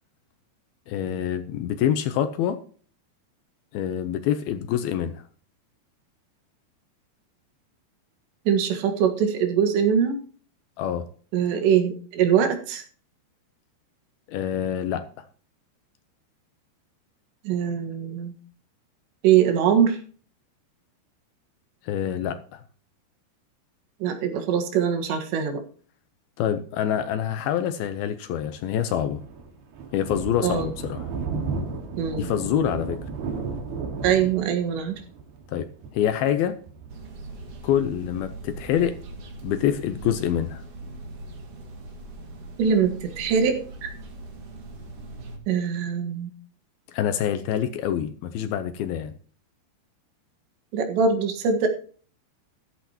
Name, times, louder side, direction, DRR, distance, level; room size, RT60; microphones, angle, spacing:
voice 1, 0.9-2.6 3.7-5.1 10.8-11.1 14.3-15.1 21.8-22.6 26.4-29.2 29.9-31.1 32.2-33.0 35.5-36.6 37.6-39.0 39.4-40.6 46.9-49.1, left 10 dB, 80° left, 2.4 m, -26 dB
voice 2, 8.5-10.2 11.3-12.8 17.5-18.3 19.2-20.0 24.0-25.6 30.4-30.7 32.0-32.3 34.0-35.0 42.6-43.9 45.5-46.3 50.7-51.7, right 7 dB, 85° right, 3.8 m, -22 dB
Thunder, 28.7-37.9, right 4 dB, 70° right, 3.5 m, -34 dB
sound 1, 36.9-45.4, right 2 dB, 45° right, 2.1 m, -40 dB
14.0 x 12.5 x 2.9 m
omnidirectional pair, 4.9 m